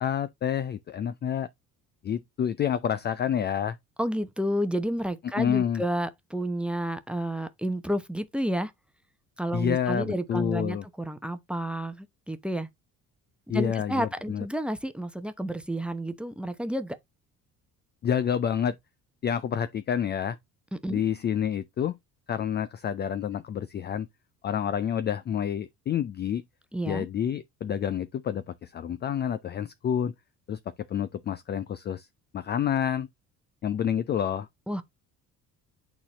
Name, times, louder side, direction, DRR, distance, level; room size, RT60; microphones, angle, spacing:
voice 1, 0.0-1.5 2.0-3.8 5.4-5.8 9.5-10.8 13.5-14.5 18.0-18.8 19.2-20.4 20.9-22.0 22.3-24.1 24.4-26.4 26.9-30.1 30.5-30.6 30.9-32.1 32.3-33.1 33.6-34.5, left 8 dB, 25° left, 0.4 m, -28 dB
voice 2, 4.0-8.7 9.4-12.7 13.5-17.0 20.7-21.0 26.7-27.1 34.7-34.8, right 1 dB, ahead, 0.8 m, -30 dB
8.8 x 4.1 x 2.9 m
figure-of-eight pair, 55°, 45 cm